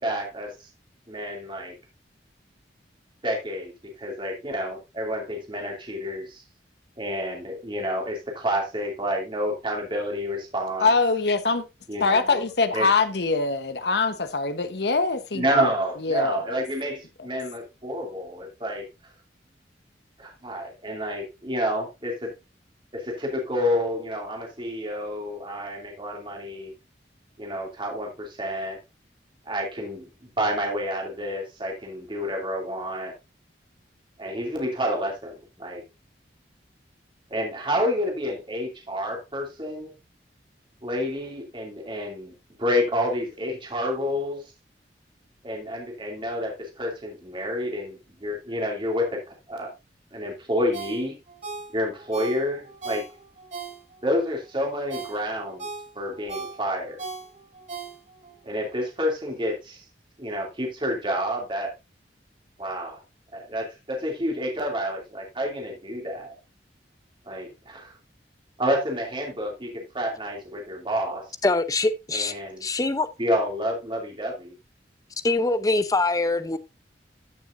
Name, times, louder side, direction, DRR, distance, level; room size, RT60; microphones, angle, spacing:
voice 1, 0.0-0.5 1.1-1.7 3.2-3.7 4.0-6.4 7.0-10.9 11.9-12.3 12.7-12.9 15.3-18.8 20.2-22.3 22.9-26.7 27.4-28.8 29.5-30.1 30.4-33.1 34.2-35.8 37.3-39.9 40.8-42.3 42.6-44.4 45.4-49.2 49.5-49.7 50.1-51.2 51.7-53.0 54.0-55.7 55.9-57.0 58.4-59.8 60.2-61.7 62.6-63.0 63.3-66.3 67.3-67.9 68.6-71.3 72.1-72.6 73.2-74.5, equal, 30° right, 2.7 m, -29 dB
voice 2, 10.8-11.7 12.0-15.7 16.0-16.6, left 4 dB, 65° left, 1.1 m, -23 dB
Ringtone, 50.7-54.2 54.6-58.4 58.7-58.8, right 4 dB, 45° right, 5.1 m, -38 dB
voice 3, 71.4-72.3 72.6-73.1 75.2-76.6, left 2 dB, 20° left, 0.7 m, -23 dB
14.0 x 6.3 x 2.6 m
head